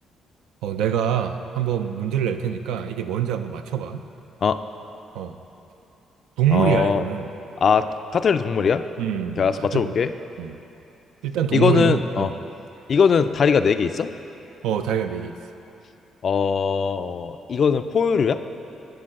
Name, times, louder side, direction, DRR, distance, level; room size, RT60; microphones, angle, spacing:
voice 1, 0.6-4.0 5.1-5.4 6.4-7.3 9.0-10.0 10.4-10.6 11.2-12.4 14.6-15.4, right 9 dB, 90° right, 8 dB, 0.4 m, -25 dB
voice 2, 6.5-7.0 7.6-7.9 8.1-8.8 9.4-10.1 11.5-12.3 12.9-14.1 16.2-18.4, left 6 dB, 50° left, 11 dB, 0.3 m, -20 dB
11.5 x 3.9 x 6.4 m, 3.0 s
cardioid pair, 90°, 0 cm